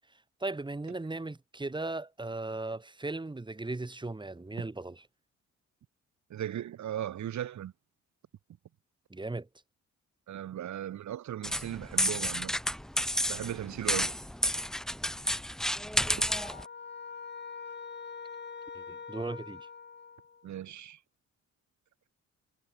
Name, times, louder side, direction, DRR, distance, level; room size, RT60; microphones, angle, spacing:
voice 1, 0.4-5.0 9.1-9.5 18.7-19.7, right 2 dB, 15° right, 2.5 m, -37 dB
voice 2, 6.3-7.7 10.3-12.5 13.3-14.2 20.4-21.0, right 11 dB, 70° right, 3.6 m, -37 dB
sound 1, 11.4-16.6, equal, ahead, 0.7 m, -31 dB
sound 2, 16.1-20.5, left 5 dB, 35° left, 4.6 m, -44 dB
cardioid pair, 90°, 30 cm